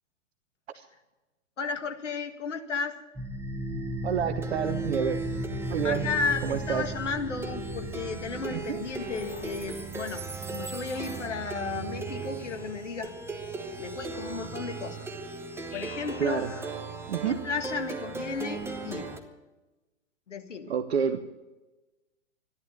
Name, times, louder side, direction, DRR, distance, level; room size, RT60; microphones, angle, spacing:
voice 1, 1.6-3.0 5.8-13.2 13.8-15.1 15.7-16.7 17.2-19.1 20.3-20.7, left 5 dB, 70° left, 6 dB, 2.0 m, -34 dB
Plucked string instrument, 3.2-19.2, right 2 dB, 5° right, 1.2 m, -36 dB
voice 2, 4.0-5.2 5.7-6.1 6.4-6.8 8.5-8.8 16.2-16.5 17.1-17.4 20.7-21.2, right 7 dB, 55° right, 10 dB, 1.1 m, -28 dB
Speech synthesizer, 8.9-10.0 10.8-11.8 12.4-13.0 14.1-15.0 15.7-16.9, left 5 dB, 25° left, 1.5 m, -48 dB
14.0 x 11.0 x 8.9 m, 1.1 s
figure-of-eight pair, 110°, 38 cm